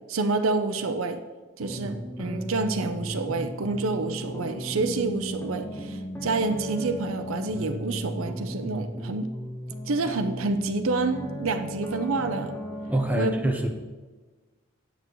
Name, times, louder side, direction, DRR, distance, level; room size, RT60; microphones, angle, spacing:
voice 1, 0.1-1.2 1.6-9.3 9.9-12.5 13.1-13.7, right 3 dB, 80° right, 9 dB, 0.6 m, -28 dB
sound 1, 1.6-13.2, equal, 10° left, 1.0 m, -35 dB
voice 2, 12.9-13.7, right 1 dB, 10° right, 2 dB, 0.8 m, -25 dB
9.2 x 8.1 x 3.1 m, 1.3 s
head